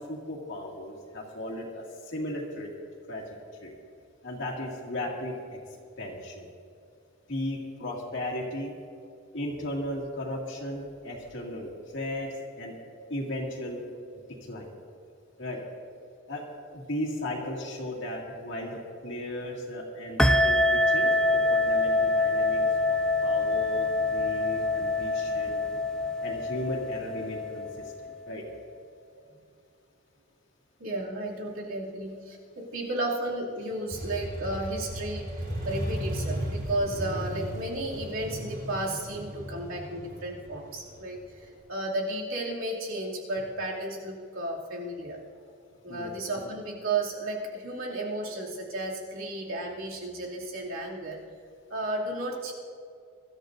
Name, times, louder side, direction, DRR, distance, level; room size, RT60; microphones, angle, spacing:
voice 1, 0.0-2.7 3.1-3.7 4.2-5.6 6.0-6.5 7.3-8.7 9.3-12.7 13.1-13.8 14.4-14.7 15.4-15.6 16.3-16.4 16.7-22.6 22.9-25.6 26.2-28.4 45.9-46.1, left 1 dB, 60° left, -3 dB, 2.3 m, -36 dB
sound 1, 20.2-28.3, left 2 dB, 5° left, 0.3 m, -25 dB
voice 2, 30.8-45.2 45.8-51.2 51.7-52.5, right 1 dB, 75° right, -3 dB, 2.6 m, -33 dB
Motorcycle, 33.9-41.5, right 1 dB, 45° right, 3.7 m, -35 dB
24.0 x 13.5 x 2.6 m, 2.4 s
head